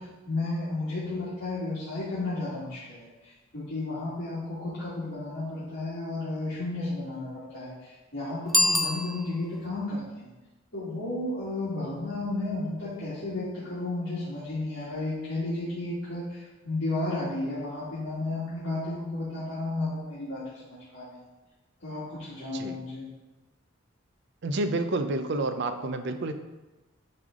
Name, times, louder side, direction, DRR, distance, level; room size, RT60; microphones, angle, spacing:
voice 1, 0.0-10.3 10.7-21.2 21.8-23.1, left 2 dB, 60° left, -10 dB, 2.0 m, -33 dB
Bicycle bell, 8.5-9.7, left 1 dB, ahead, 0.4 m, -26 dB
voice 2, 24.4-26.3, right 2 dB, 60° right, 8 dB, 0.6 m, -29 dB
9.6 x 3.4 x 3.7 m, 1.1 s
head